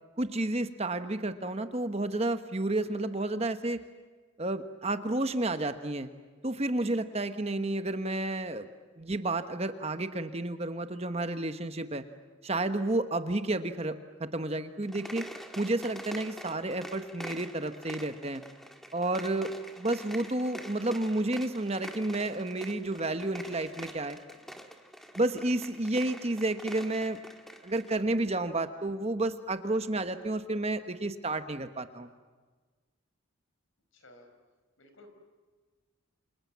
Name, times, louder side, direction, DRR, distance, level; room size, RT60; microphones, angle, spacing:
voice 1, 0.2-3.8 4.4-6.1 6.4-8.7 9.0-12.0 12.4-15.2 15.6-18.4 18.9-19.5 19.8-24.2 25.2-27.2 27.6-32.1, right 2 dB, 30° right, 9 dB, 1.1 m, -31 dB
sound 1, 14.8-28.0, equal, ahead, 1.6 m, -46 dB
voice 2, 33.9-34.3 34.8-35.1, left 1 dB, 70° left, 6 dB, 5.2 m, -55 dB
29.0 x 27.0 x 7.5 m, 1.4 s
head